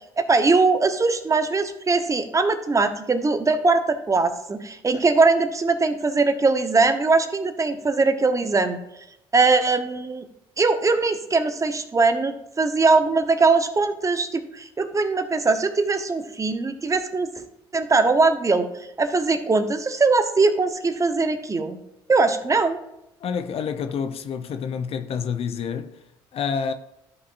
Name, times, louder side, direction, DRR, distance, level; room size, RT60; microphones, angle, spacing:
voice 1, 0.2-8.8 9.3-10.2 10.6-17.3 17.7-18.7 19.0-21.8 22.1-22.8, right 3 dB, 25° right, 1.0 m, -21 dB
voice 2, 23.2-26.0 26.3-26.7, left 6 dB, 55° left, 0.7 m, -28 dB
12.5 x 5.5 x 2.6 m
hypercardioid pair, 65°, 12 cm